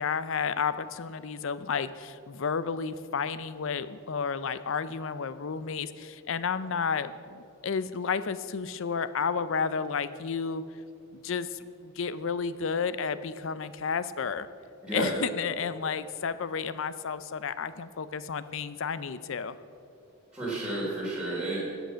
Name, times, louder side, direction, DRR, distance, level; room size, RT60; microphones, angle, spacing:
voice 1, 0.0-10.6 11.1-14.5 14.9-19.6, left 6 dB, 60° left, 14 dB, 0.5 m, -32 dB
voice 2, 14.8-15.1 20.3-21.6, right 2 dB, 5° right, -9 dB, 3.3 m, -31 dB
13.0 x 8.1 x 6.3 m, 2.5 s
head